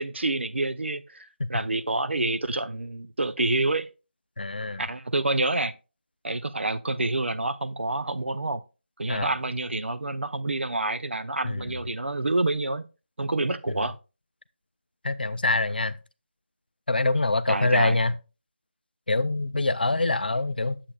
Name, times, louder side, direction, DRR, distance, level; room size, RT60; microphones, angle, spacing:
voice 1, 0.0-3.9 4.8-5.7 6.2-8.6 9.0-12.9 13.2-14.0 17.5-18.0, right 2 dB, 75° right, 0.7 m, -28 dB
voice 2, 4.4-4.8 9.1-9.3 11.4-11.7 15.0-16.0 16.9-18.1 19.1-20.8, left 2 dB, 50° left, 0.5 m, -25 dB
8.7 x 7.5 x 2.3 m
figure-of-eight pair, 175°, 6 cm